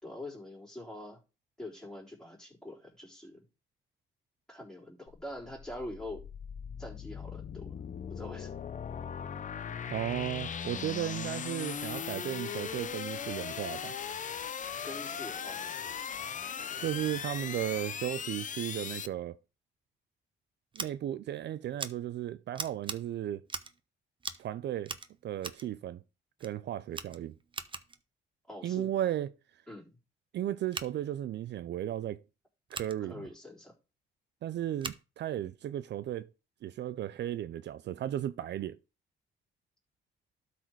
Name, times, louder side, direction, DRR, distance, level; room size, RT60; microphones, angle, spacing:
voice 1, 0.0-1.2 1.6-3.4 4.5-6.2 6.8-7.8 8.1-8.5 14.8-16.1 28.5-28.9 29.7-30.0 33.0-33.8, left 1 dB, 5° left, 4.0 m, -44 dB
sound 1, 5.1-19.1, left 7 dB, 40° left, 0.6 m, -39 dB
voice 2, 9.9-13.9 16.8-19.4 20.7-23.4 24.4-25.0 25.2-26.0 26.4-27.3 28.6-29.3 30.3-32.2 32.7-33.3 34.4-36.3 36.6-38.8, right 12 dB, 60° right, 0.5 m, -35 dB
Scissors, 20.7-20.9 21.8-21.9 22.5-23.0 23.5-23.8 24.2-24.5 24.8-25.7 26.4-26.5 26.9-28.0 30.7-30.9 32.7-32.9 34.8-35.0, right 4 dB, 25° right, 0.9 m, -40 dB
12.0 x 4.2 x 4.6 m
cardioid pair, 90°, 20 cm